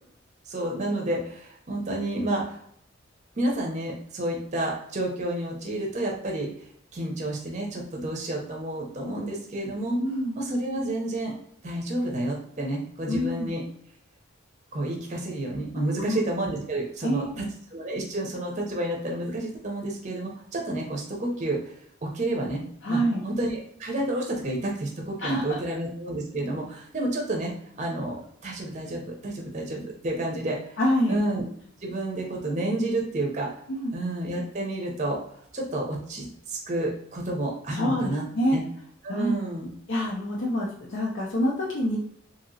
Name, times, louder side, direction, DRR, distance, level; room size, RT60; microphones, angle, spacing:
voice 1, 0.5-2.6 3.4-6.5 6.9-10.0 10.4-11.3 11.6-13.6 14.7-17.4 17.7-21.6 22.0-22.6 22.9-27.5 27.8-30.6 31.1-31.5 31.8-33.5 33.9-35.2 35.5-38.2 38.5-38.6 39.0-39.7, right 1 dB, 35° right, -1 dB, 0.6 m, -30 dB
voice 2, 10.0-10.3 13.1-13.5 15.9-16.2 17.0-17.5 22.8-23.2 25.2-25.6 30.8-31.2 33.7-33.9 37.7-38.6 39.1-39.3 39.9-42.0, equal, 60° left, -4 dB, 0.5 m, -26 dB
2.8 x 2.8 x 2.6 m, 0.67 s
head